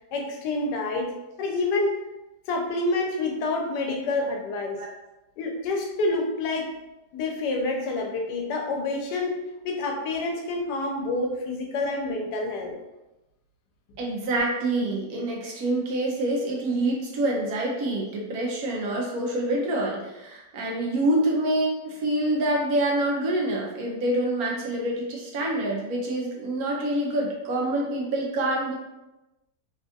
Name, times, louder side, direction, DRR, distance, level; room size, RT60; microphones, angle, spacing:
voice 1, 0.1-1.1 1.4-2.0 2.5-4.8 5.4-6.7 7.1-9.4 9.6-12.7, left 2 dB, 90° left, 2 dB, 1.2 m, -28 dB
voice 2, 14.0-28.7, right 1 dB, 70° right, -2 dB, 1.1 m, -26 dB
3.3 x 2.4 x 2.6 m, 1.0 s
omnidirectional pair, 1.7 m